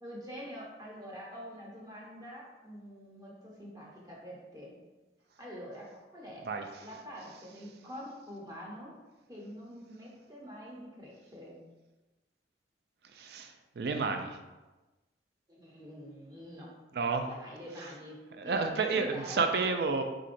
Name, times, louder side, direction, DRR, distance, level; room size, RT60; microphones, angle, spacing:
voice 1, 0.0-4.8 5.4-6.5 6.8-8.9 9.3-11.7 15.5-16.7 17.2-18.2 18.4-19.5, equal, 20° right, -4 dB, 0.9 m, -46 dB
voice 2, 13.1-14.4 16.9-17.2 18.4-20.0, right 4 dB, 60° right, 6 dB, 0.4 m, -30 dB
4.4 x 3.7 x 2.6 m, 1.1 s
head